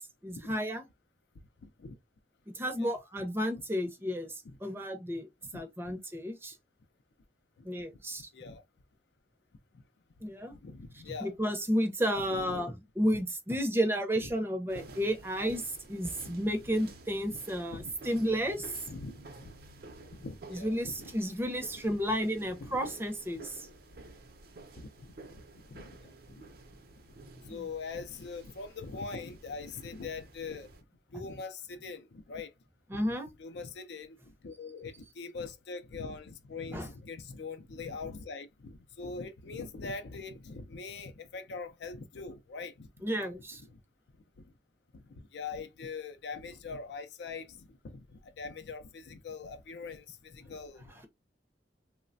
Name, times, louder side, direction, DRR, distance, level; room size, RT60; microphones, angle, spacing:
voice 1, 0.2-0.8 2.5-6.6 7.6-8.3 10.2-10.5 11.2-15.6 15.9-18.7 20.5-23.7 27.5-27.6 32.9-33.3 36.7-36.9 43.0-43.6, equal, 15° right, 0.5 m, -32 dB
voice 2, 1.6-2.0 2.8-3.0 4.4-4.6 5.9-6.0 7.6-7.7 8.3-8.6 9.7-9.8 10.5-11.4 12.3-12.8 13.1-13.2 14.2-14.3 17.3-17.4 17.7-17.9 18.9-19.5 20.1-21.1 21.4-21.8 22.6-22.8 24.7-26.4 27.3-30.7 31.1-32.5 32.9-42.9 43.2-43.3 43.6-43.8 44.4-44.5 44.9-51.1, left 4 dB, 70° left, 0.4 m, -43 dB
sound 1, 14.7-30.8, right 2 dB, 60° right, 0.6 m, -51 dB
3.1 x 2.1 x 2.4 m
head